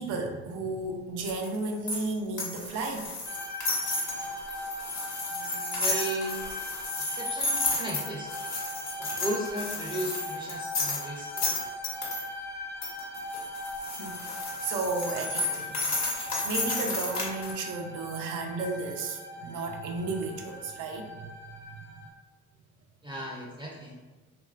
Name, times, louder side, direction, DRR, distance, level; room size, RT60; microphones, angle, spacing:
voice 1, 0.0-3.1 14.0-15.8 16.1-21.3 21.7-21.8, right 3 dB, 90° right, 3 dB, 0.5 m, -33 dB
Bag of chainmail chunks, 1.2-12.2 12.8-17.5, left 2 dB, 60° left, 0.9 m, -32 dB
sound 1, 3.3-22.1, left 1 dB, 35° left, 0.5 m, -40 dB
voice 2, 5.3-6.4 7.1-8.4 9.0-11.6 23.0-24.0, right 1 dB, 15° right, -2 dB, 0.4 m, -36 dB
3.0 x 2.4 x 2.3 m, 1.3 s
cardioid pair, 90°, 30 cm